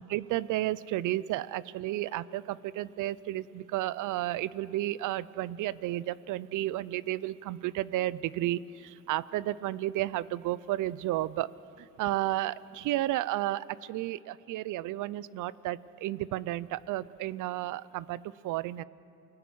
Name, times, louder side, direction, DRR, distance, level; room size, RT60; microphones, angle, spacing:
voice 1, 0.0-18.8, right 15 dB, 85° right, 20 dB, 0.6 m, -32 dB
29.0 x 18.5 x 6.3 m, 2.6 s
cardioid pair, 90°, 30 cm